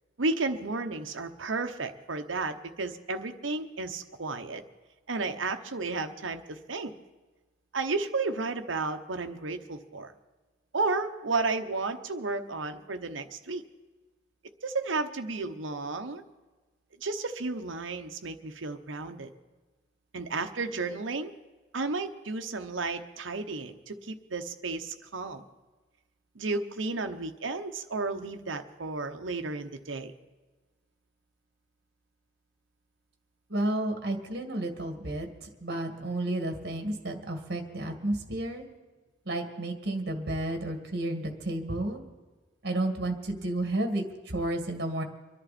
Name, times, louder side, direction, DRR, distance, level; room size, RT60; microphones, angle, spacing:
voice 1, 0.2-4.6 5.1-6.9 7.7-10.1 10.7-13.6 14.6-16.2 17.0-19.3 20.1-21.3 21.7-25.4 26.3-30.1, right 3 dB, 90° right, 7 dB, 1.0 m, -33 dB
voice 2, 33.5-35.3 35.6-38.7 39.3-42.0 42.6-45.0, right 1 dB, 55° right, 5 dB, 2.0 m, -31 dB
25.0 x 11.0 x 4.3 m, 1.2 s
head